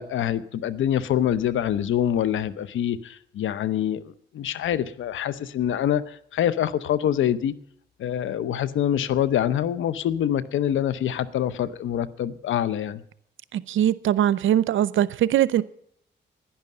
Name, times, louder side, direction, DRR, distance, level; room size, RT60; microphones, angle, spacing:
voice 1, 0.0-7.5 8.0-13.0, left 10 dB, 80° left, 0.8 m, -25 dB
voice 2, 13.7-15.6, right 11 dB, 85° right, 0.6 m, -21 dB
11.0 x 10.5 x 8.4 m
cardioid pair, 70°, 20 cm